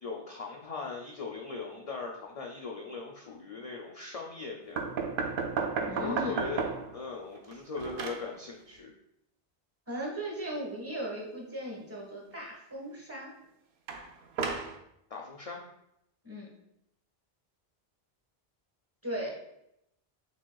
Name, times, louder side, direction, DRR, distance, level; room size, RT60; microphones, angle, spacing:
voice 1, 0.0-4.8 5.8-6.7 6.9-8.9 15.1-15.6, left 4 dB, 50° left, 0 dB, 0.5 m, -39 dB
sound 1, 4.8-7.0 7.3-8.3 13.9-14.8, right 5 dB, 65° right, 0.7 m, -33 dB
voice 2, 5.9-6.4 9.9-13.4 16.2-16.5 19.0-19.3, right 1 dB, 15° right, -3 dB, 1.2 m, -37 dB
6.4 x 3.5 x 2.3 m, 0.80 s
omnidirectional pair, 1.1 m